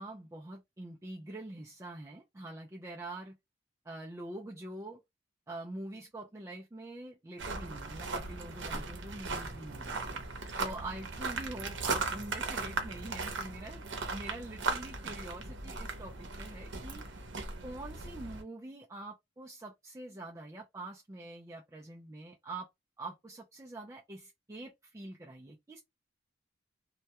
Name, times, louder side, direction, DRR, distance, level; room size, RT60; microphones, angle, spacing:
voice 1, 0.0-3.4 3.9-5.0 5.5-10.2 10.6-13.8 14.1-17.0 17.6-22.7 23.0-25.8, right 2 dB, 15° right, 0.3 m, -45 dB
sound 1, 7.4-18.4, right 3 dB, 80° right, 0.7 m, -38 dB
2.2 x 2.1 x 2.8 m
head